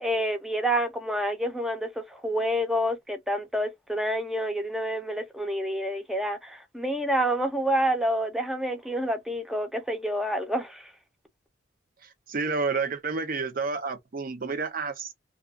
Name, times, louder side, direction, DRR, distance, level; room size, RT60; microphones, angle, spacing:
voice 1, 0.0-10.9, equal, ahead, 0.5 m, -28 dB
voice 2, 12.0-15.1, right 4 dB, 50° right, 0.6 m, -30 dB
2.4 x 2.3 x 2.3 m
head